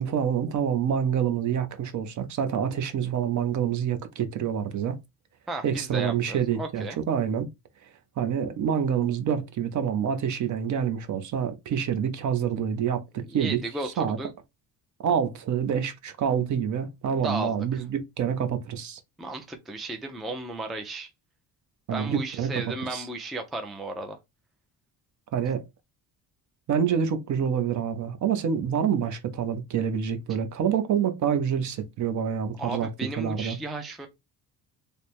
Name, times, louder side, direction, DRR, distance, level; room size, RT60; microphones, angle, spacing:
voice 1, 0.0-5.0 5.6-7.5 7.8-14.2 15.0-19.0 21.9-22.5 22.9-23.1 25.3-25.6 26.7-32.9 33.2-33.6, right 8 dB, 50° right, 0.6 m, -27 dB
voice 2, 5.5-7.0 13.3-14.3 17.2-17.8 19.2-21.1 21.9-24.2 32.6-34.1, right 2 dB, ahead, 0.3 m, -34 dB
3.3 x 2.1 x 4.2 m
cardioid pair, 150°, 39 cm